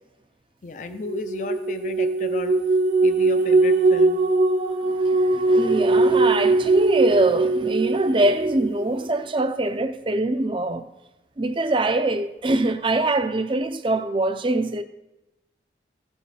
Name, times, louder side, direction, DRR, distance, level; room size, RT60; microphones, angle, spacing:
voice 1, 0.6-2.6 3.0-4.2, left 2 dB, 45° left, 0.5 m, -33 dB
sound 1, 1.0-8.9, right 3 dB, 50° right, 0.9 m, -20 dB
voice 2, 4.8-10.9 11.4-14.8, right 2 dB, 30° right, 0.6 m, -23 dB
15.0 x 5.3 x 4.9 m
head